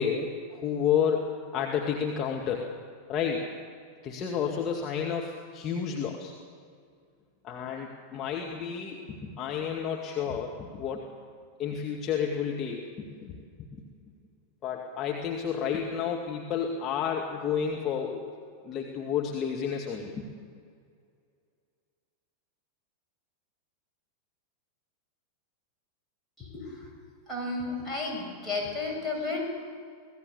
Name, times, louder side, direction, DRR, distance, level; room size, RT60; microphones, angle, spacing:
voice 1, 0.0-2.7 3.1-3.4 4.0-6.3 7.4-11.0 11.6-13.3 13.7-13.9 14.6-18.2 18.6-20.3, left 7 dB, 30° left, 0 dB, 2.0 m, -31 dB
voice 2, 26.4-26.7 27.3-29.6, left 3 dB, 5° left, -3 dB, 7.2 m, -33 dB
24.5 x 18.0 x 7.0 m, 2.2 s
figure-of-eight pair, 90°, 0 cm